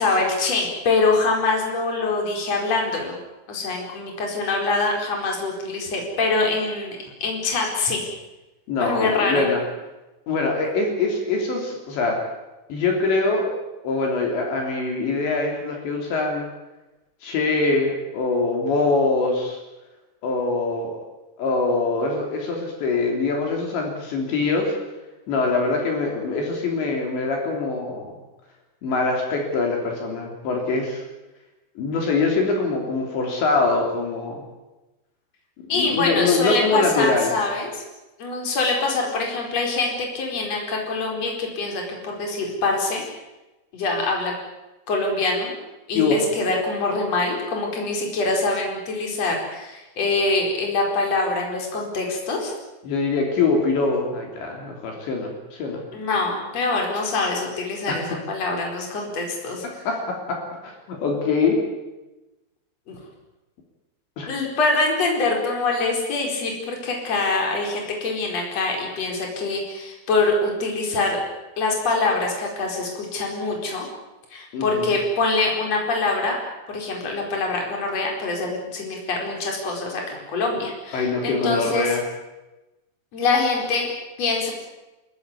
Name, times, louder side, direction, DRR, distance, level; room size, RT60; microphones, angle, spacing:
voice 1, 0.0-3.2 3.5-8.0 8.8-9.5 35.7-37.8 38.2-43.0 43.7-44.3 44.9-45.6 45.9-52.5 55.9-59.6 62.9-63.0 64.3-71.2 71.6-73.9 74.3-76.4 76.7-81.9 83.1-83.9 84.2-84.5, left 3 dB, 35° left, 0 dB, 5.4 m, -24 dB
voice 2, 8.7-9.6 10.3-12.2 12.7-13.5 13.8-16.4 17.2-19.6 20.2-21.0 21.4-24.7 25.3-28.1 28.8-31.0 31.8-34.4 35.7-37.3 45.9-46.2 52.8-55.8 57.9-58.0 59.9-61.6 64.2-64.3 74.5-74.9 80.9-82.0, left 3 dB, 65° left, 1 dB, 5.6 m, -23 dB
28.0 x 14.0 x 9.9 m, 1.0 s
omnidirectional pair, 5.6 m